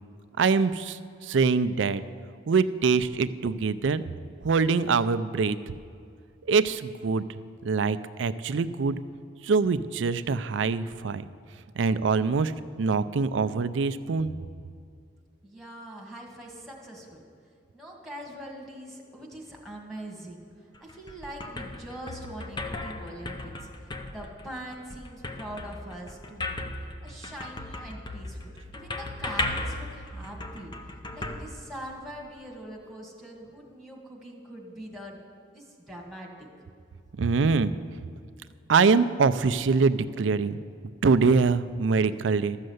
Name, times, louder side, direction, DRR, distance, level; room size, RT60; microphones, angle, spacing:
voice 1, 0.4-2.0 2.5-4.0 4.4-5.6 6.5-7.2 7.6-9.0 9.4-11.3 11.8-12.5 12.8-14.3 37.2-37.7 38.7-40.6 41.0-42.6, right 4 dB, 85° right, 14 dB, 0.4 m, -24 dB
voice 2, 15.4-17.2 17.7-20.5 20.8-26.6 27.0-30.7 31.1-35.2 35.5-36.5, right 1 dB, ahead, -2 dB, 1.8 m, -42 dB
sound 1, 20.7-32.2, left 2 dB, 25° left, 0.6 m, -37 dB
13.0 x 6.5 x 7.9 m, 2.3 s
head